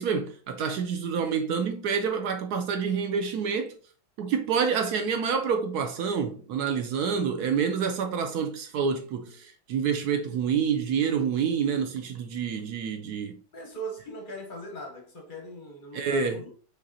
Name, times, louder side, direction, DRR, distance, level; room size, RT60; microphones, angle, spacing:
voice 1, 0.0-3.8 4.2-13.4 15.9-16.4, right 6 dB, 70° right, 0.9 m, -28 dB
voice 2, 13.5-16.5, right 1 dB, 45° left, 0.6 m, -40 dB
5.8 x 3.3 x 2.7 m
omnidirectional pair, 2.1 m